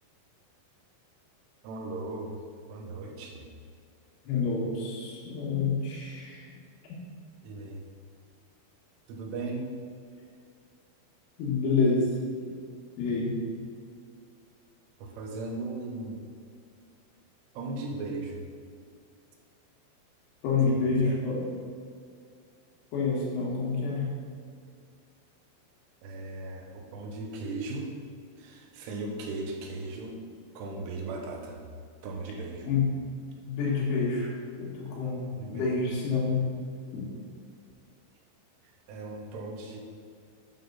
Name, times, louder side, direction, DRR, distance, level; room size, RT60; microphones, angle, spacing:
voice 1, 1.6-2.4 2.7-3.5 7.4-7.8 9.1-9.8 15.0-16.2 17.5-18.5 20.7-21.2 26.0-27.9 28.4-30.2 30.5-31.6 32.0-32.7 35.4-35.7 38.6-39.8, right 2 dB, 80° right, 1 dB, 3.3 m, -37 dB
voice 2, 4.2-6.5 11.4-12.1 13.0-13.4 20.4-21.5 22.9-24.1 32.7-32.9 33.5-36.4 36.9-37.1, left 4 dB, 85° left, -4 dB, 4.2 m, -28 dB
9.9 x 5.8 x 3.9 m, 2.2 s
omnidirectional pair, 5.7 m